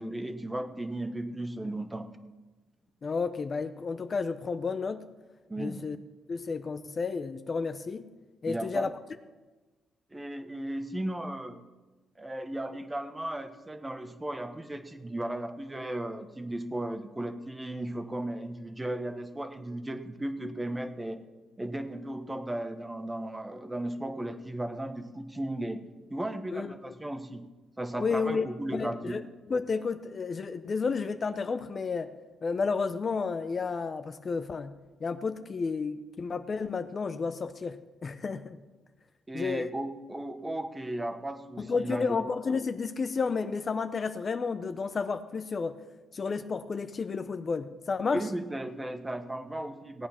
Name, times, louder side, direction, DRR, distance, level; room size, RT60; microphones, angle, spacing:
voice 1, 0.0-2.1 5.5-5.8 8.5-8.9 10.1-11.6 12.2-21.2 21.6-27.5 27.8-29.2 39.3-42.2 48.1-50.1, right 1 dB, 15° right, 9 dB, 1.1 m, -35 dB
voice 2, 3.0-5.1 5.6-6.0 6.3-8.0 8.4-8.9 26.5-26.7 28.0-28.5 28.7-29.2 29.5-32.1 32.4-34.7 35.0-38.6 39.3-39.7 41.6-45.7 46.1-48.2, left 4 dB, 35° left, 10 dB, 0.6 m, -31 dB
17.5 x 8.9 x 5.8 m, 1.2 s
cardioid pair, 110°, 0 cm